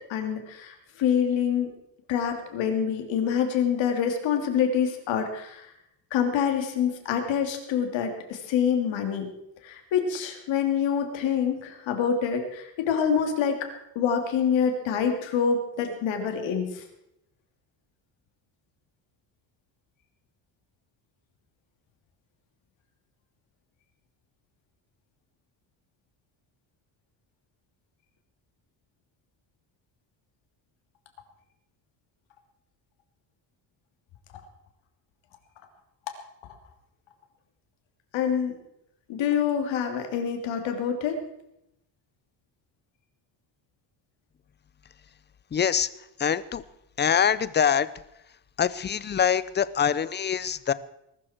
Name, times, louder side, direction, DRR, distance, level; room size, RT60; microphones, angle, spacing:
voice 1, 0.1-1.7 2.1-5.7 6.1-9.3 9.6-13.7 13.9-16.8 38.1-38.5 39.1-41.2, left 7 dB, 85° left, 4 dB, 3.0 m, -26 dB
voice 2, 45.5-45.9 46.2-46.6 47.0-47.9 48.6-50.7, left 8 dB, 25° left, 16 dB, 0.5 m, -24 dB
20.5 x 13.0 x 4.5 m, 0.82 s
cardioid pair, 155°, 44 cm